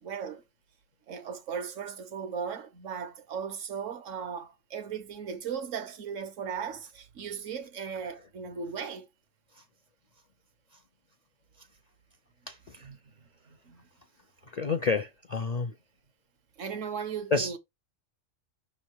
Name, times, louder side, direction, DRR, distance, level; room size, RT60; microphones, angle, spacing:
voice 1, 0.0-0.4 1.1-9.1 12.8-13.9 16.6-17.6, right 7 dB, 70° right, 1.3 m, -37 dB
voice 2, 12.5-12.9 14.4-15.7 17.3-17.5, left 4 dB, 55° left, 0.4 m, -30 dB
6.1 x 3.5 x 4.5 m
omnidirectional pair, 1.3 m